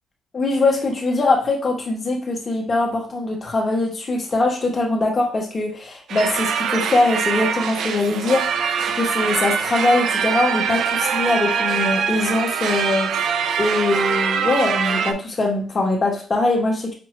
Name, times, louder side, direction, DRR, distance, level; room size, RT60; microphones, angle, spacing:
voice 1, 0.3-8.5 8.8-13.1 13.6-16.9, left 2 dB, 25° left, 0 dB, 0.9 m, -22 dB
sound 1, 6.1-15.1, right 7 dB, 65° right, 0.3 m, -23 dB
5.2 x 2.3 x 3.0 m, 0.41 s
cardioid pair, 160°, 0 cm